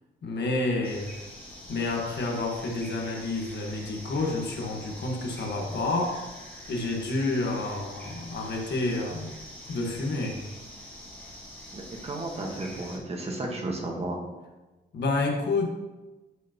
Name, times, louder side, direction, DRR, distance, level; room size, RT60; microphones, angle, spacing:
voice 1, 0.2-1.1 1.7-6.3 6.7-9.3 9.7-10.4 14.9-15.7, left 2 dB, 75° left, 1 dB, 1.4 m, -29 dB
sound 1, 0.8-13.0, left 1 dB, 10° left, 1.8 m, -45 dB
voice 2, 11.7-14.2, right 2 dB, 35° right, 1 dB, 1.3 m, -33 dB
10.0 x 5.0 x 2.9 m, 1.1 s
wide cardioid pair, 165°, 18 cm